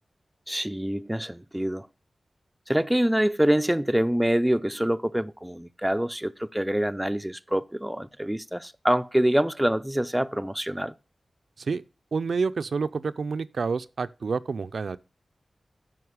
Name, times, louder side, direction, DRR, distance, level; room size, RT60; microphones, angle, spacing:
voice 1, 0.5-1.9 2.7-10.9, equal, 5° right, 0.4 m, -25 dB
voice 2, 12.1-15.0, right 4 dB, 75° right, 0.4 m, -28 dB
9.4 x 5.7 x 4.8 m
wide cardioid pair, 105°, 0 cm